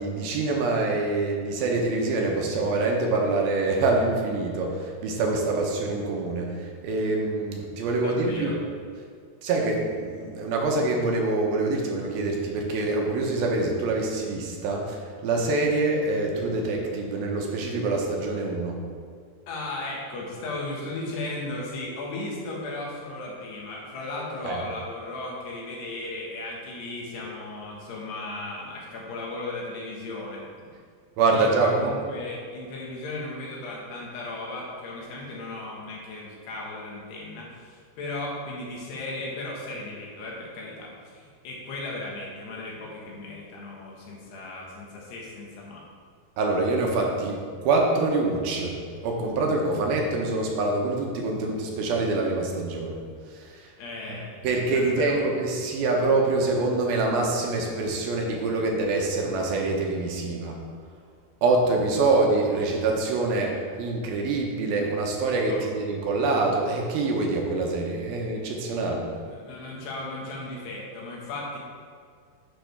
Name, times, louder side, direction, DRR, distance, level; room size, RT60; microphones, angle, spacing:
voice 1, 0.0-8.5 9.4-18.7 24.5-24.6 31.2-31.9 46.4-48.7 49.0-53.0 53.3-53.7 54.4-60.5 61.4-69.0, right 3 dB, 75° right, 0 dB, 2.6 m, -25 dB
voice 2, 7.9-8.6 19.5-30.7 31.3-45.8 53.8-55.4 63.5-63.6 65.5-65.7 69.2-71.6, left 2 dB, 80° left, -3 dB, 3.7 m, -36 dB
10.0 x 6.9 x 3.5 m, 2.1 s
omnidirectional pair, 4.7 m